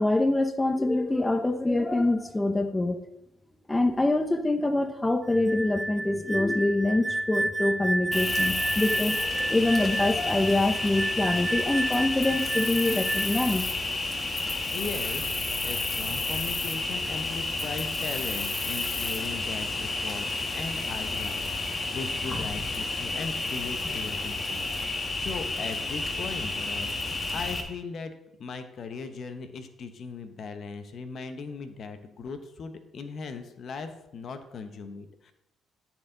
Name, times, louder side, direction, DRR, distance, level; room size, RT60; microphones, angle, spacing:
voice 1, 0.0-3.0 3.7-13.7, left 2 dB, 15° left, 8 dB, 0.8 m, -25 dB
sound 1, 5.3-13.5, right 2 dB, 30° right, 0.5 m, -31 dB
Cricket, 8.1-27.6, left 3 dB, 35° left, 1.6 m, -31 dB
voice 2, 14.7-20.3 20.5-28.1 28.4-35.3, left 4 dB, 60° left, 9 dB, 0.8 m, -38 dB
13.5 x 4.5 x 3.9 m, 0.89 s
supercardioid pair, 70°, 0 cm